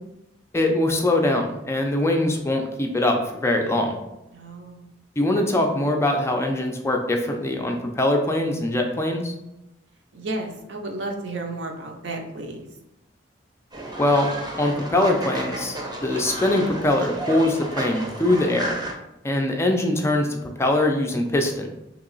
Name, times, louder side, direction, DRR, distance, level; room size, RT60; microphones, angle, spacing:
voice 1, 0.5-4.0 5.2-9.3 14.0-14.3 14.6-18.8 19.2-21.7, left 1 dB, 15° left, 2 dB, 0.4 m, -22 dB
voice 2, 4.3-4.9 10.1-12.7, right 2 dB, 65° right, 2 dB, 0.6 m, -32 dB
Fowl, 13.7-18.9, right 1 dB, 20° right, 0.6 m, -32 dB
3.0 x 2.8 x 3.9 m, 0.89 s
head